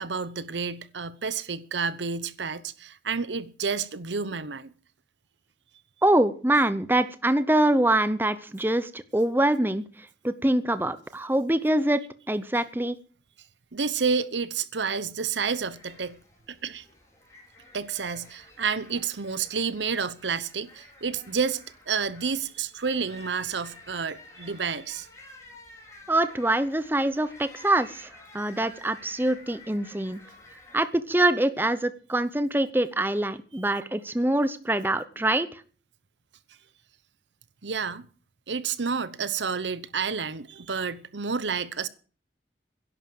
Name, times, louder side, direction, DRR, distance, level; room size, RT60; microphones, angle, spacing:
voice 1, 0.0-4.7 13.7-16.2 16.5-16.8 17.7-21.6 21.9-25.1 37.6-38.1 38.5-41.9, right 5 dB, 90° right, 0.9 m, -30 dB
voice 2, 6.0-9.8 10.2-12.0 12.3-13.0 26.1-28.1 28.3-30.2 30.7-35.6, right 1 dB, 10° right, 0.7 m, -24 dB
sound 1, 15.4-30.8, left 2 dB, 15° left, 4.1 m, -51 dB
12.0 x 11.0 x 7.8 m
head